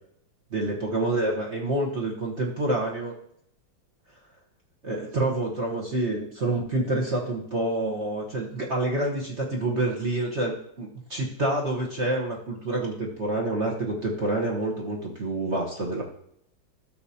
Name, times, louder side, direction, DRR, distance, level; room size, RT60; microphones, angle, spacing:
voice 1, 0.5-3.1 4.8-16.0, right 2 dB, 40° right, -2 dB, 1.3 m, -27 dB
13.0 x 6.6 x 2.8 m, 0.72 s
omnidirectional pair, 2.1 m